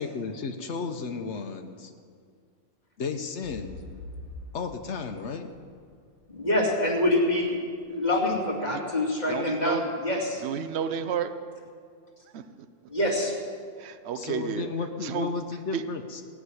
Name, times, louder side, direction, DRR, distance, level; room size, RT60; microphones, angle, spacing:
voice 1, 0.0-1.9 3.0-3.8 4.5-5.5 14.1-16.2, left 5 dB, 75° left, 6 dB, 1.1 m, -33 dB
sound 1, 3.4-7.3 7.9-8.0, left 2 dB, 30° right, 4.2 m, -44 dB
voice 2, 6.3-7.6 7.9-10.4 12.9-13.3, left 1 dB, 35° left, -3 dB, 2.7 m, -25 dB
voice 3, 9.3-9.8 10.4-11.3 12.3-12.7 13.8-14.7 15.0-15.4 15.7-15.8, right 8 dB, 65° right, 10 dB, 1.0 m, -31 dB
17.5 x 6.3 x 9.6 m, 2.1 s
omnidirectional pair, 1.2 m